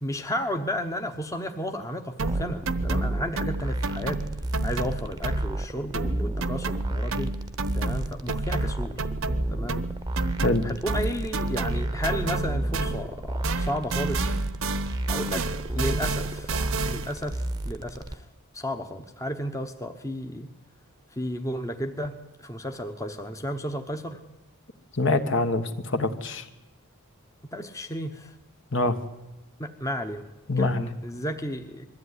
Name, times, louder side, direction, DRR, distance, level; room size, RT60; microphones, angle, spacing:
voice 1, 0.0-4.2 4.6-7.3 7.7-9.0 9.5-9.9 10.6-14.4 15.1-15.5 15.7-16.6 16.9-18.3 18.5-20.5 21.1-24.2 27.5-28.4 29.6-30.2 30.6-31.9, equal, 15° left, 5 dB, 1.0 m, -33 dB
sound 1, 2.2-5.7 5.9-13.2 13.4-17.2, right 3 dB, 65° right, 1.0 m, -30 dB
sound 2, 2.3-18.2, right 1 dB, 20° right, 0.9 m, -32 dB
voice 2, 25.0-26.4 28.7-29.0 30.5-30.9, left 2 dB, 55° left, 8 dB, 1.4 m, -24 dB
21.5 x 14.0 x 9.7 m, 0.99 s
head